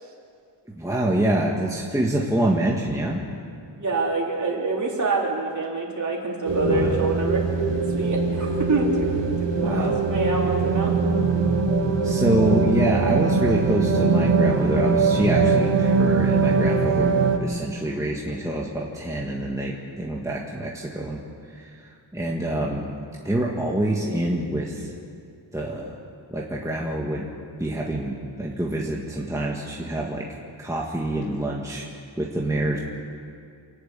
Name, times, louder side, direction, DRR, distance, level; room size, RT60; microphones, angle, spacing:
voice 1, 0.8-3.2 6.6-7.1 9.6-10.0 12.0-17.1 17.4-21.2 21.6-22.9 23.2-24.9 25.5-26.0 26.3-27.3 27.6-30.3 30.6-31.9 32.2-32.8, right 1 dB, 5° right, -3 dB, 1.7 m, -26 dB
voice 2, 3.7-9.1 9.4-10.9, right 3 dB, 40° right, -2 dB, 3.9 m, -26 dB
sound 1, 6.4-17.4, right 4 dB, 65° right, 2.0 m, -22 dB
28.0 x 11.0 x 8.3 m, 2.4 s
wide cardioid pair, 125°, 46 cm